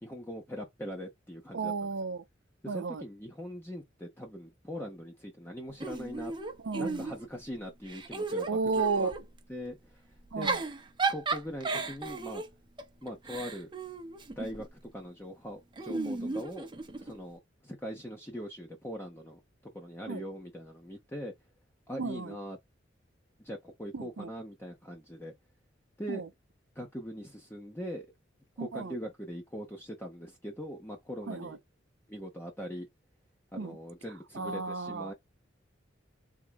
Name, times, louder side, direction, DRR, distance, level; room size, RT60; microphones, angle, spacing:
voice 1, 0.0-1.9 2.6-6.3 6.7-9.1 9.5-10.0 10.3-10.5 11.1-12.4 13.0-13.7 14.4-16.7 17.0-19.4 19.7-21.3 21.9-22.6 23.4-25.3 26.0-26.2 26.8-28.1 28.6-31.6 32.1-32.9 33.5-35.1, equal, 10° left, 0.8 m, -41 dB
voice 2, 1.5-2.2 2.7-3.0 6.6-7.1 8.5-9.1 10.3-10.6 15.9-16.4 20.1-20.2 22.0-22.3 23.9-24.3 26.1-26.3 28.6-28.9 31.3-31.6 33.5-33.8 34.3-35.1, right 4 dB, 75° right, 0.6 m, -33 dB
Giggle / Chuckle chortle, 5.8-7.4 7.8-9.2 10.2-14.7 15.8-17.2, right 3 dB, 25° right, 0.8 m, -35 dB
3.7 x 3.5 x 3.4 m
head